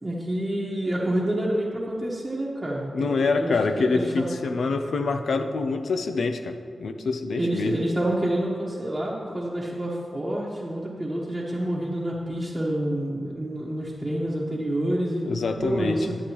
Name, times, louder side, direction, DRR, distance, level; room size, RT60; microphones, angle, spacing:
voice 1, 0.0-4.3 7.4-16.2, right 1 dB, 20° right, -6 dB, 1.1 m, -28 dB
voice 2, 2.9-7.8 15.3-16.0, left 3 dB, 75° left, 8 dB, 0.5 m, -25 dB
9.6 x 8.3 x 3.0 m, 2.2 s
cardioid pair, 75°, 0 cm